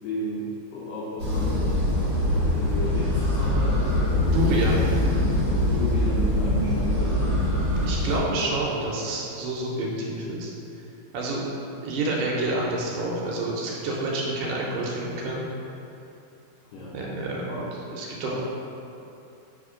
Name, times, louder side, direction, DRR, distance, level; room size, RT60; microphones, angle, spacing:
voice 1, 0.0-4.5 5.5-7.4 12.1-12.2 16.7-17.0 17.5-17.8 18.2-18.4, left 1 dB, 75° left, -7 dB, 2.1 m, -34 dB
sound 1, 1.2-8.2, left 1 dB, 55° right, 1.4 m, -23 dB
voice 2, 4.3-4.8 7.8-10.5 11.1-11.5 11.8-15.4 16.9-17.7 17.9-18.4, right 2 dB, 80° right, -3 dB, 2.7 m, -28 dB
7.7 x 2.9 x 4.9 m, 2.8 s
omnidirectional pair, 4.8 m